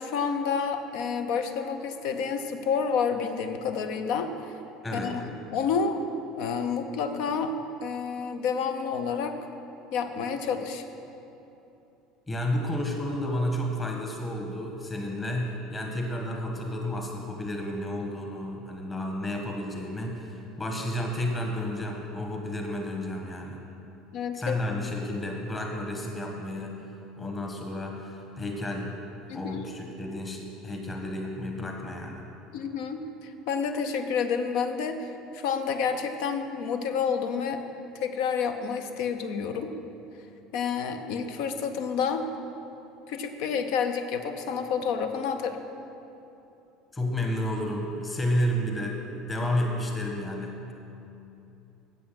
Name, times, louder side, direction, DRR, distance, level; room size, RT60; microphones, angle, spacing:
voice 1, 0.0-4.5 4.9-6.0 6.4-7.5 7.8-9.3 9.9-10.8 24.1-24.6 29.3-29.7 32.5-37.6 37.9-39.7 40.5-42.3 43.1-45.6, left 6 dB, 60° left, 7 dB, 0.6 m, -29 dB
voice 2, 4.8-5.2 12.3-23.7 24.3-26.8 27.2-29.0 29.3-32.3 46.9-50.7, left 1 dB, 20° left, 1 dB, 1.5 m, -31 dB
8.4 x 7.7 x 5.9 m, 2.9 s
figure-of-eight pair, 65°, 0 cm